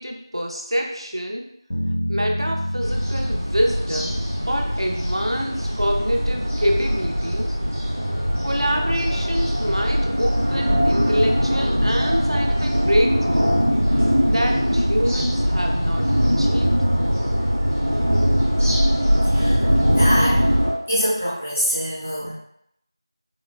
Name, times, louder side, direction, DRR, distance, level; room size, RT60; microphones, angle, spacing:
voice 1, 0.0-1.5 2.1-7.6 8.4-13.5 14.3-16.8, equal, 90° right, 1 dB, 0.6 m, -26 dB
sound 1, 1.7-5.8, equal, 55° left, 1.2 m, -29 dB
sound 2, 2.8-20.7, equal, 35° right, 0.7 m, -21 dB
voice 2, 19.2-20.5 20.9-22.3, equal, 15° left, -12 dB, 0.5 m, -25 dB
3.7 x 2.1 x 2.2 m, 0.73 s
figure-of-eight pair, 175°, 3 cm